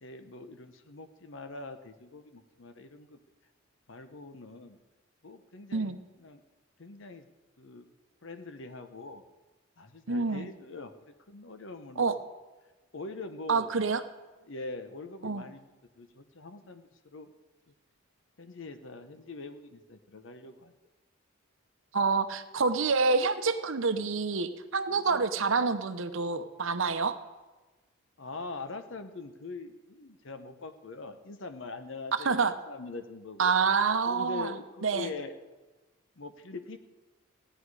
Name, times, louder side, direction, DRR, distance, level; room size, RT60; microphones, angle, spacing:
voice 1, 0.0-3.2 3.9-4.8 5.2-6.4 6.8-7.3 7.6-7.9 8.2-9.2 9.8-12.1 12.9-13.7 14.5-15.6 16.0-17.3 17.7-17.8 18.4-20.7 24.9-25.3 28.2-32.4 32.7-33.5 34.1-35.4 36.2-36.8, left 3 dB, 65° left, 9 dB, 0.8 m, -43 dB
voice 2, 10.1-10.5 12.0-12.2 13.5-14.0 15.2-15.4 21.9-27.2 32.2-32.5 33.4-34.5 34.8-35.1, right 4 dB, 70° right, 10 dB, 0.8 m, -27 dB
15.5 x 10.0 x 4.8 m, 1.2 s
head